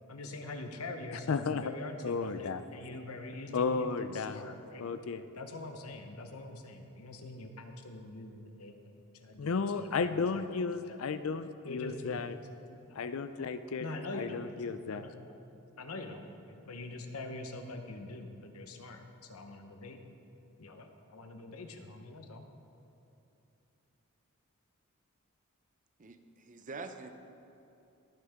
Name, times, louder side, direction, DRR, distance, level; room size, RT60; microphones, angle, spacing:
voice 1, 0.1-4.9 5.4-10.4 10.9-11.0 11.6-13.5 13.8-14.4 14.9-15.3 15.8-20.0 20.6-22.4, left 2 dB, 90° left, 5 dB, 0.9 m, -44 dB
voice 2, 1.1-1.7 2.0-2.6 3.5-4.4 4.8-5.2 9.4-12.4 13.0-13.9 14.1-15.1, left 5 dB, 70° left, 11 dB, 0.4 m, -33 dB
voice 3, 26.0-27.1, right 3 dB, 35° right, 8 dB, 0.6 m, -45 dB
19.5 x 6.5 x 3.5 m, 2.9 s
head